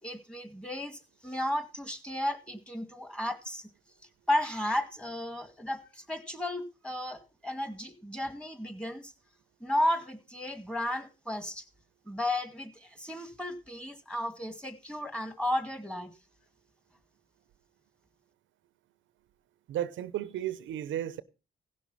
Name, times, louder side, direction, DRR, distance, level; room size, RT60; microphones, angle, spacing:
voice 1, 0.0-3.6 4.3-9.1 9.6-11.6 12.1-16.1, left 1 dB, 5° left, 2.1 m, -33 dB
voice 2, 19.7-21.2, right 12 dB, 75° right, 0.8 m, -34 dB
16.5 x 6.2 x 5.6 m
cardioid pair, 90°, 20 cm